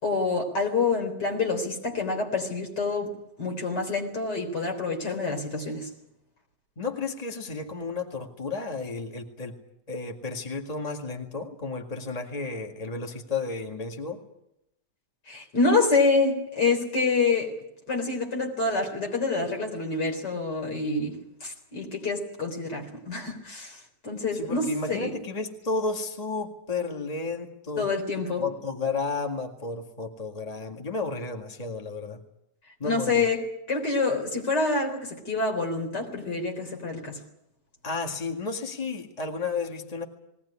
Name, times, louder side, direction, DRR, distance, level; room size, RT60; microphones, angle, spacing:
voice 1, 0.0-3.1 3.4-5.9 15.3-17.5 17.9-23.8 24.0-25.2 27.8-28.4 32.8-33.4 33.7-37.2, left 3 dB, 80° left, 2 dB, 4.6 m, -27 dB
voice 2, 6.8-9.6 9.9-14.2 24.3-27.9 28.4-32.2 32.8-33.2 37.8-40.0, left 4 dB, 20° left, 3 dB, 2.0 m, -32 dB
20.5 x 18.5 x 9.9 m, 0.82 s
omnidirectional pair, 1.8 m